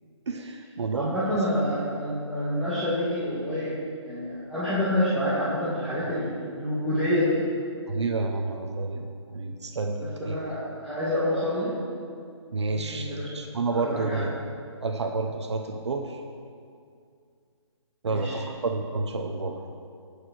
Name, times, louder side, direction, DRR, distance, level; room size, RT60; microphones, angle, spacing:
voice 1, 0.3-1.3 7.9-10.4 12.5-14.3 14.8-16.2 18.0-19.6, right 3 dB, 65° right, 4 dB, 1.1 m, -30 dB
voice 2, 0.9-3.7 4.0-7.4 10.0-11.7 12.7-13.3 13.7-14.2 18.1-18.4, left 1 dB, ahead, -14 dB, 2.4 m, -27 dB
18.5 x 6.8 x 4.6 m, 2.3 s
figure-of-eight pair, 145°, 15 cm